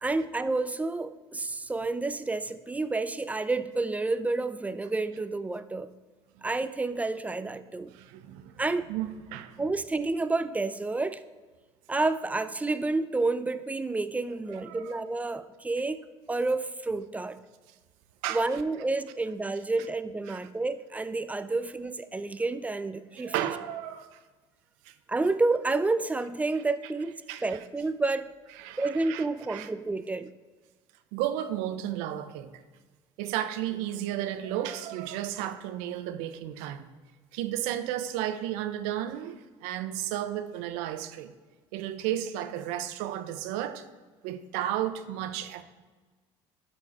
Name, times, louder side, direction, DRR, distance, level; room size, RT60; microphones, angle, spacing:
voice 1, 0.0-5.9 6.4-7.9 8.6-8.9 9.6-11.2 11.9-17.4 18.3-23.3 25.1-28.3 28.8-30.3, right 3 dB, 10° right, 0.4 m, -29 dB
voice 2, 7.9-8.6 8.9-9.6 14.5-15.0 18.2-18.5 20.3-20.4 23.2-24.2 24.9-25.0 27.3-27.6 28.6-29.7 31.1-32.6 33.2-36.9 37.3-41.3 41.7-43.9 44.2-45.6, right 12 dB, 80° right, 0.6 m, -33 dB
12.0 x 4.5 x 4.2 m
supercardioid pair, 95°, 13 cm